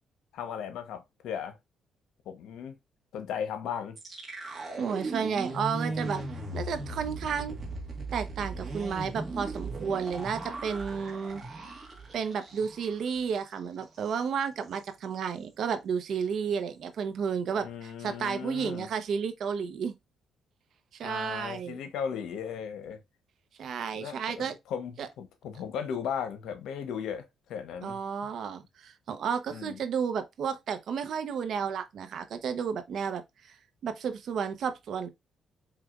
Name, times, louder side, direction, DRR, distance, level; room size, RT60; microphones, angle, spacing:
voice 1, 0.3-1.6 2.3-2.8 3.1-4.0 17.6-18.9 21.0-23.0 24.0-28.0 29.5-29.8, left 7 dB, 80° left, 0.9 m, -36 dB
sound 1, 4.0-13.0 13.3-13.5 13.8-14.2, right 2 dB, 35° right, 1.7 m, -37 dB
voice 2, 4.4-6.2 6.5-7.6 8.1-11.4 12.1-19.9 20.9-21.8 23.6-24.6 25.0-25.1 27.8-33.5 33.8-35.1, right 6 dB, 65° right, 0.8 m, -32 dB
4.8 x 3.3 x 2.4 m
cardioid pair, 90°, 0 cm